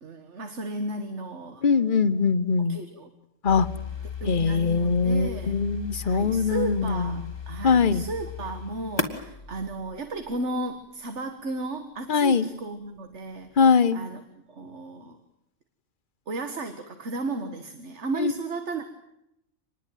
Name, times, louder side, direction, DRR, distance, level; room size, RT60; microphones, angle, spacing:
voice 1, 0.0-1.6 2.7-3.1 4.2-5.6 6.0-13.6 13.9-14.2 14.5-15.2 16.3-18.8, right 2 dB, 55° right, 8 dB, 1.9 m, -34 dB
voice 2, 1.6-2.8 3.4-3.7 4.3-7.1 7.6-8.0 12.1-12.5 13.6-14.0 18.2-18.3, left 5 dB, 40° left, 12 dB, 1.2 m, -22 dB
sound 1, 3.5-10.4, left 5 dB, 20° left, 2.0 m, -36 dB
26.0 x 20.5 x 9.3 m, 0.84 s
omnidirectional pair, 1.4 m